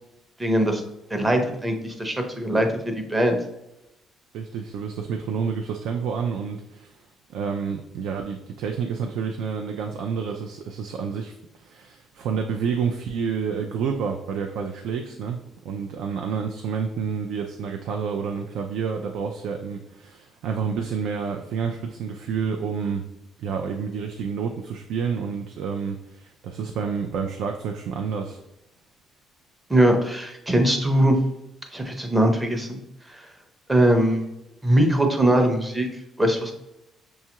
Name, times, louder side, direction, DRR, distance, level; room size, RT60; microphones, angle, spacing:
voice 1, 0.4-0.8 1.1-3.4 29.7-31.2 31.7-32.8 33.1-33.3 33.7-34.2 34.6-35.9 36.2-36.5, right 1 dB, 10° right, 4 dB, 0.6 m, -21 dB
voice 2, 4.3-15.4 15.6-23.0 23.4-28.4, right 6 dB, 80° right, 3 dB, 0.4 m, -29 dB
6.3 x 2.3 x 2.9 m, 0.89 s
cardioid pair, 135°, 0 cm